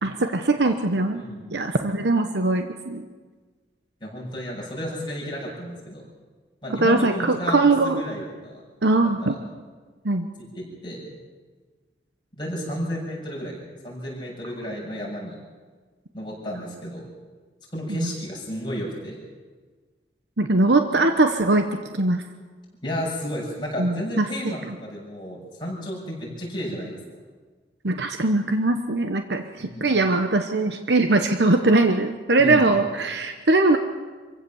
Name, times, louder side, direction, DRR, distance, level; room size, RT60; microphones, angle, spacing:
voice 1, 0.0-1.2 1.5-3.1 6.8-8.0 8.8-9.4 10.0-10.3 17.9-18.1 20.4-21.6 21.9-22.2 23.8-24.8 27.8-33.8, right 2 dB, 80° right, 6 dB, 1.1 m, -21 dB
voice 2, 4.0-6.0 6.6-8.6 9.2-9.4 10.4-11.0 12.4-13.5 13.8-15.4 16.1-17.1 17.7-19.2 22.8-27.0 29.6-29.9 32.4-32.6, equal, 25° left, -3 dB, 7.0 m, -32 dB
25.5 x 16.0 x 7.2 m, 1.4 s
head